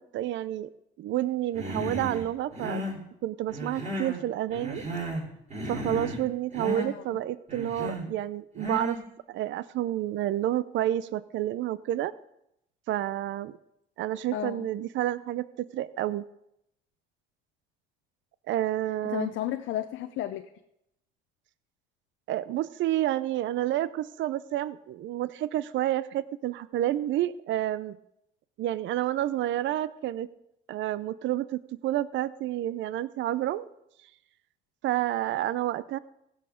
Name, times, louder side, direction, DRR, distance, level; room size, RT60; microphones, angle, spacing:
voice 1, 0.1-0.7 1.0-2.8 3.2-4.8 5.7-9.0 9.3-12.1 12.9-13.5 14.0-16.2 18.5-19.3 22.3-28.0 28.6-30.3 30.7-33.7 34.8-36.0, right 13 dB, 70° right, 17 dB, 0.5 m, -29 dB
Human voice, 1.5-2.2 2.5-3.0 3.5-4.2 4.5-5.3 5.5-6.2 6.5-6.9 7.5-8.1 8.6-9.0, equal, 35° right, 5.4 m, -34 dB
voice 2, 6.7-7.0 14.3-14.7 19.1-20.4, left 12 dB, 75° left, 8 dB, 0.7 m, -33 dB
16.5 x 6.5 x 5.1 m, 0.81 s
supercardioid pair, 80°, 21 cm